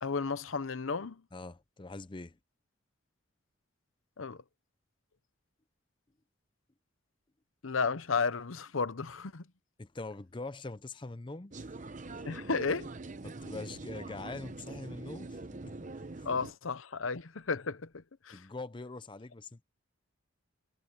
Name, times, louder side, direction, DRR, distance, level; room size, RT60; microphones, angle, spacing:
voice 1, 0.0-1.2 4.2-4.4 7.6-9.5 12.2-12.9 16.2-18.5, left 4 dB, 85° left, 0.8 m, -33 dB
voice 2, 1.3-2.4 9.8-11.7 13.2-15.4 15.6-15.7 16.2-16.3 18.3-19.6, left 2 dB, 25° left, 0.6 m, -43 dB
sound 1, 11.5-16.5, right 2 dB, 40° right, 0.8 m, -44 dB
head